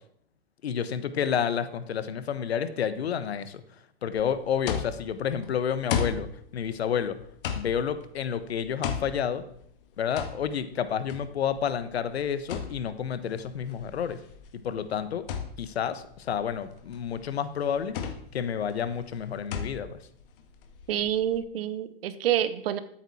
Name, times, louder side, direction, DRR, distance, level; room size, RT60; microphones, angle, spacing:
voice 1, 0.6-3.6 4.0-7.2 7.5-9.4 10.0-14.2 14.5-15.3 15.6-18.0 18.3-20.0, left 8 dB, 85° left, 12 dB, 1.3 m, -30 dB
sound 1, 4.1-21.4, left 7 dB, 60° left, 1.8 m, -37 dB
voice 2, 20.9-22.8, right 11 dB, 65° right, 13 dB, 1.2 m, -27 dB
13.0 x 9.0 x 4.3 m, 0.65 s
hypercardioid pair, 135°, 31 cm